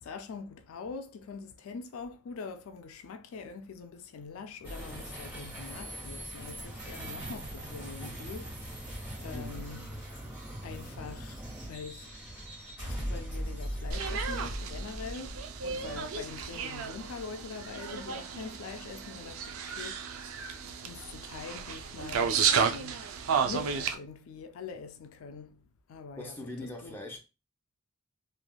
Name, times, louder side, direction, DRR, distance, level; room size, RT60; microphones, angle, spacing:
voice 1, 0.0-10.2 10.6-12.2 12.7-23.1 23.4-27.0, left 5 dB, 70° left, 0.3 m, -44 dB
sound 1, 4.6-18.0, equal, 10° right, 1.3 m, -40 dB
sound 2, 13.9-24.0, right 6 dB, 75° right, 0.4 m, -33 dB
voice 2, 26.2-27.2, left 1 dB, 10° left, 0.5 m, -42 dB
3.2 x 2.4 x 2.2 m
head